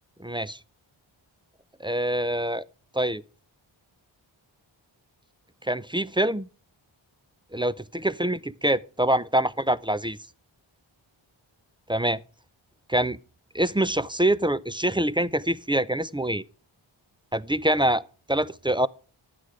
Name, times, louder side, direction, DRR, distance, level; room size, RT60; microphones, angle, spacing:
voice 1, 0.2-0.6 1.8-2.6 2.9-3.2 5.6-6.5 7.5-10.2 11.9-12.2 12.9-13.2 13.5-16.4 17.3-18.0 18.3-18.9, right 1 dB, 10° right, 0.5 m, -25 dB
11.5 x 8.6 x 4.8 m
wide cardioid pair, 60°, 49 cm